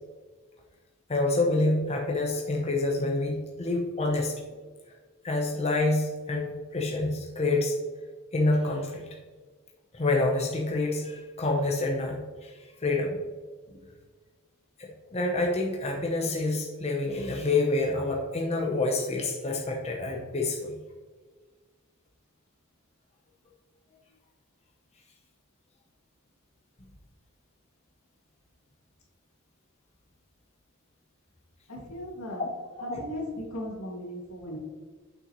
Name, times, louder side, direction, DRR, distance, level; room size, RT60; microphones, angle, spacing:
voice 1, 1.1-4.3 5.2-7.8 8.3-9.1 9.9-13.2 13.7-13.8 14.8-20.8 32.4-32.5 32.8-33.0, left 2 dB, 30° left, 0 dB, 0.7 m, -27 dB
voice 2, 31.7-32.4 32.9-33.2 33.5-34.6, equal, 80° left, -2 dB, 2.0 m, -37 dB
6.6 x 5.8 x 3.0 m, 1.4 s
head